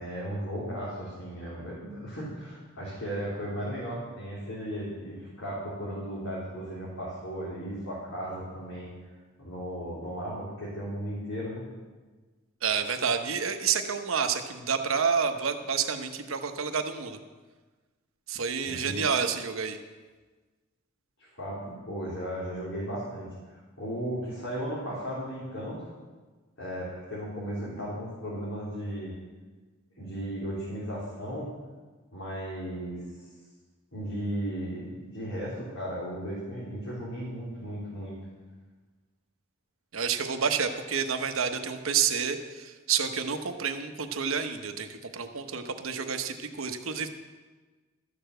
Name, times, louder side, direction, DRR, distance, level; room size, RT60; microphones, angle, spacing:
voice 1, 0.0-8.9 9.4-11.7 18.6-18.9 21.4-23.3 23.8-25.9 26.6-29.1 30.0-31.5 32.1-33.0 33.9-38.1, equal, 75° left, -8 dB, 3.7 m, -35 dB
voice 2, 12.6-17.2 18.3-19.8 39.9-47.1, right 6 dB, 75° right, 7 dB, 1.0 m, -29 dB
12.5 x 6.8 x 7.8 m, 1.3 s
head